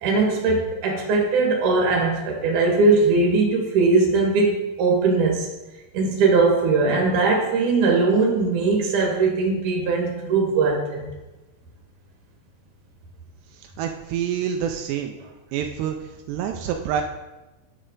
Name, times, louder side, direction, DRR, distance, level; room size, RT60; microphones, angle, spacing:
voice 1, 0.0-5.5 5.9-11.1, right 3 dB, 55° right, 0 dB, 2.8 m, -20 dB
voice 2, 13.5-15.2 15.5-17.0, right 9 dB, 85° right, 4 dB, 2.7 m, -27 dB
10.0 x 7.1 x 3.8 m, 1.1 s
omnidirectional pair, 4.8 m